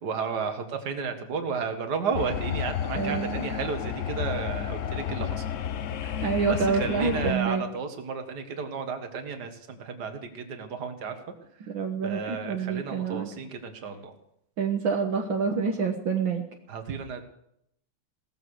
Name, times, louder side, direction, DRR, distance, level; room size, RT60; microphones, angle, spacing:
voice 1, 0.0-5.4 6.0-11.2 12.0-14.1 16.7-17.2, right 5 dB, 55° right, 6 dB, 2.2 m, -33 dB
sound 1, 2.1-7.3, left 9 dB, 70° left, 0.7 m, -31 dB
voice 2, 3.0-3.5 6.2-7.6 11.7-13.3 14.6-16.4, right 5 dB, 70° right, 3 dB, 2.0 m, -27 dB
18.0 x 14.0 x 4.9 m, 0.75 s
omnidirectional pair, 2.3 m